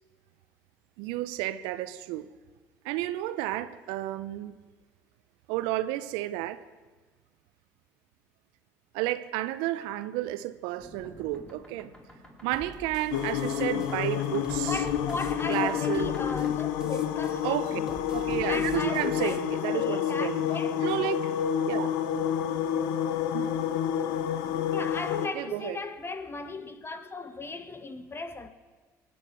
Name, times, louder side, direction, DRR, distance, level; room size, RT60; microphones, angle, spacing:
voice 1, 1.0-2.3 2.8-4.6 5.5-6.6 8.9-11.9 12.4-14.7 15.5-16.1 17.4-17.8 18.1-20.4 20.8-21.3 21.7-21.9 23.3-23.5 25.3-25.8, right 15 dB, 75° right, 0.7 m, -31 dB
sound 1, 10.8-18.7 20.0-21.2, left 2 dB, 10° left, 4.1 m, -48 dB
sound 2, 12.5-19.4, right 1 dB, 10° right, 2.6 m, -47 dB
sound 3, 13.1-25.3, left 9 dB, 80° left, 1.0 m, -29 dB
voice 2, 14.7-18.0 18.5-20.8 24.7-28.5, left 3 dB, 30° left, 1.5 m, -37 dB
23.5 x 9.0 x 6.8 m
hypercardioid pair, 60°, 8 cm